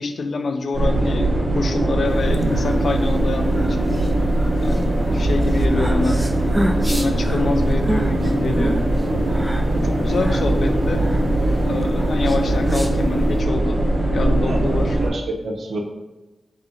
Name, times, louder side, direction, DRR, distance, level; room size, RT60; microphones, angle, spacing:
voice 1, 0.0-3.9 4.6-6.2 6.8-8.8 9.8-11.1 11.6-13.8 14.1-15.0, left 3 dB, 70° left, 6 dB, 0.4 m, -26 dB
sound 1, 0.7-15.1, right 1 dB, 55° right, 0.9 m, -20 dB
sound 2, 2.2-13.4, equal, 10° right, 0.4 m, -31 dB
voice 2, 14.4-14.7 15.0-15.8, right 2 dB, 75° right, 2 dB, 0.6 m, -28 dB
3.8 x 3.1 x 3.8 m, 1.1 s
wide cardioid pair, 105°, 0 cm